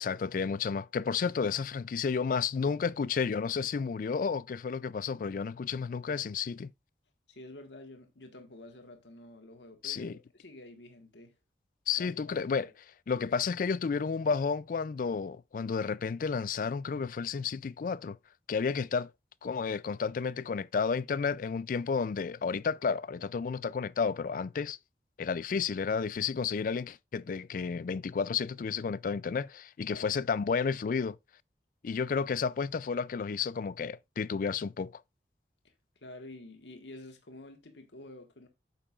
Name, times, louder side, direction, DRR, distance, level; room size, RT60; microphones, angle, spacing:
voice 1, 0.0-6.7 9.8-10.2 11.9-12.7 13.1-18.2 18.5-19.1 19.4-24.8 25.2-31.2 31.8-34.9, left 5 dB, 50° left, 0.3 m, -31 dB
voice 2, 7.3-11.3 12.0-12.4 29.9-30.1 35.6-35.7 36.0-38.5, left 1 dB, 85° left, 1.5 m, -49 dB
8.8 x 6.6 x 2.4 m
head